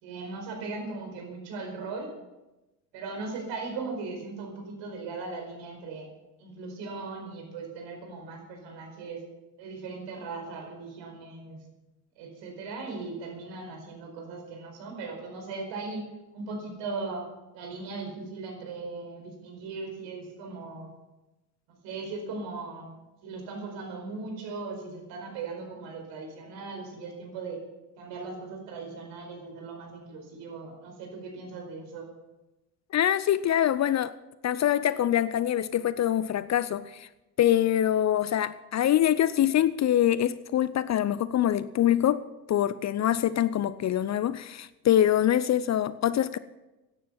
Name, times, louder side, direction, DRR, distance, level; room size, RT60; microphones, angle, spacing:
voice 1, 0.0-2.1 2.9-6.1 6.4-9.2 9.6-11.6 12.2-16.1 16.3-17.3 17.5-20.9 21.8-27.6 28.0-32.1, right 3 dB, 65° right, 4.8 m, -38 dB
voice 2, 32.9-34.1 34.4-37.1 37.4-42.2 42.5-46.4, left 11 dB, 35° left, 0.6 m, -24 dB
16.0 x 10.5 x 5.7 m
hypercardioid pair, 60°, 48 cm